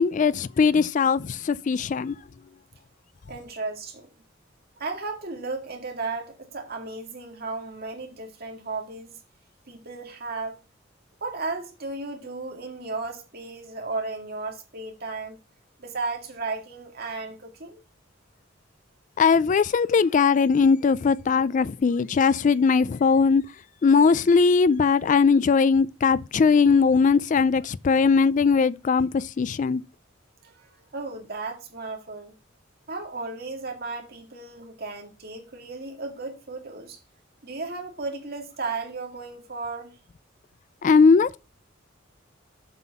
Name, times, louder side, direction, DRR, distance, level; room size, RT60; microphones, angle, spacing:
voice 1, 0.0-2.2 19.2-23.4 23.8-29.8 40.8-41.4, left 5 dB, 40° left, 0.3 m, -20 dB
voice 2, 3.3-4.1 4.8-9.2 9.7-10.6 11.2-15.4 15.8-17.8 30.4-32.3 32.9-37.0 37.4-39.9, right 3 dB, 50° right, 2.1 m, -34 dB
7.5 x 5.9 x 5.8 m
head